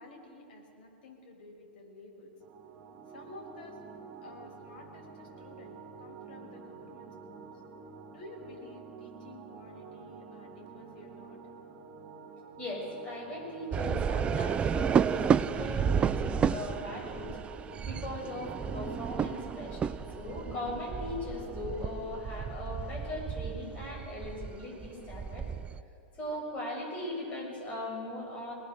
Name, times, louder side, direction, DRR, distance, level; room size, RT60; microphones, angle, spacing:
voice 1, 0.0-2.3 3.1-3.8 4.2-7.6 8.1-11.4, left 2 dB, 65° left, 1 dB, 5.9 m, -51 dB
sound 1, 2.4-21.8, right 5 dB, 35° right, 3.8 m, -49 dB
voice 2, 12.6-17.4 17.8-25.5 26.2-28.5, left 1 dB, 25° left, -1 dB, 7.3 m, -39 dB
sound 2, 13.7-25.8, right 7 dB, 20° right, 0.5 m, -32 dB
25.0 x 19.5 x 6.7 m, 2.8 s
supercardioid pair, 140°, 6 cm